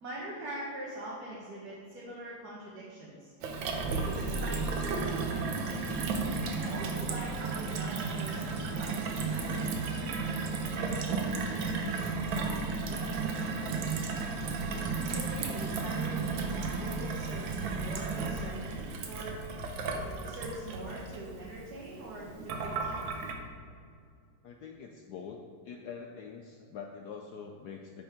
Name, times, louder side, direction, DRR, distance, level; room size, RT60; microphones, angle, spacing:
voice 1, 0.0-3.3 3.8-5.8 6.6-9.9 10.7-11.9 12.4-12.6 12.9-14.3 15.0-19.4 19.9-22.9, right 1 dB, 50° right, -6 dB, 1.7 m, -43 dB
Gurgling / Water tap faucet / Sink (filling or washing), 3.4-23.3, right 4 dB, 70° right, 1.6 m, -33 dB
voice 2, 24.4-25.4 25.6-28.0, left 6 dB, 75° left, 3 dB, 0.9 m, -44 dB
8.9 x 5.5 x 5.1 m, 2.3 s
omnidirectional pair, 2.4 m